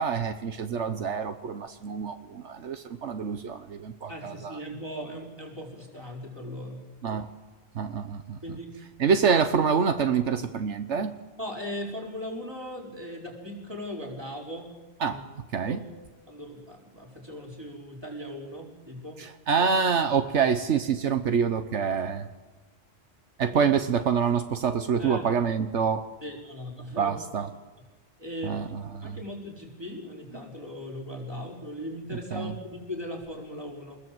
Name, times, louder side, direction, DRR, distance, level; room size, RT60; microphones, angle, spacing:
voice 1, 0.0-4.6 7.0-7.3 7.7-8.4 9.0-11.1 15.0-15.2 15.5-15.8 19.2-22.3 23.4-26.0 27.0-27.5 28.4-29.2 32.3-32.5, right 6 dB, 75° right, 9 dB, 1.3 m, -26 dB
voice 2, 4.1-6.8 8.4-8.8 11.4-14.7 15.1-15.2 15.7-15.8 16.3-19.2 23.5-23.6 25.0-25.2 26.2-27.2 28.2-28.6 29.0-34.0, equal, 20° right, -1 dB, 5.1 m, -38 dB
26.5 x 21.0 x 7.9 m, 1.2 s
omnidirectional pair, 1.2 m